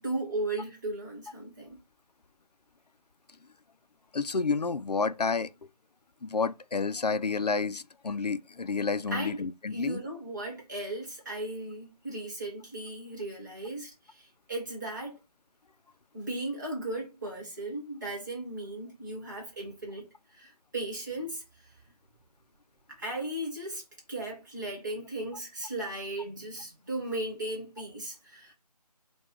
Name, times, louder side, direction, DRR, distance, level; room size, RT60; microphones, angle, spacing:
voice 1, 0.0-1.8 9.1-9.4 9.7-15.2 16.1-21.4 22.9-23.8 24.1-28.5, right 1 dB, 30° right, 1.3 m, -36 dB
voice 2, 4.1-5.5 6.2-10.0, left 4 dB, 80° left, 0.5 m, -30 dB
4.4 x 2.3 x 3.4 m
figure-of-eight pair, 160°, 20 cm